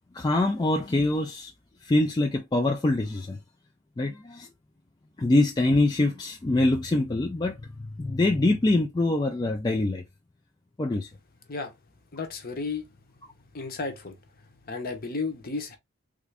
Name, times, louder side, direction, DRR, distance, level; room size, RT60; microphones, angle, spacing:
voice 1, 0.1-1.5 1.8-3.4 4.0-4.5 5.2-10.0 10.8-11.1, left 2 dB, 20° left, 0.3 m, -24 dB
voice 2, 12.1-12.9 13.5-14.1 14.6-15.8, left 4 dB, 40° left, 0.8 m, -33 dB
3.6 x 2.5 x 3.2 m
head